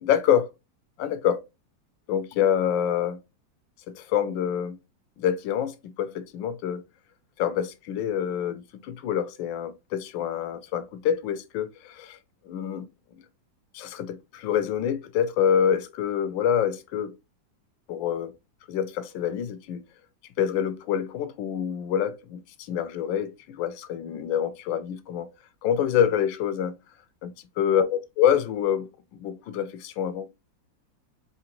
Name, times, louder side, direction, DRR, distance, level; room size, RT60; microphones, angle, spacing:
voice 1, 0.0-0.5 1.0-1.4 2.1-3.2 3.9-4.8 5.2-6.8 7.4-12.2 12.5-12.9 13.1-13.2 13.7-17.1 17.9-18.3 18.7-19.8 20.4-25.3 25.6-26.8 27.2-30.3, left 9 dB, 90° left, 1.4 m, -26 dB
4.8 x 2.8 x 2.9 m
omnidirectional pair, 2.0 m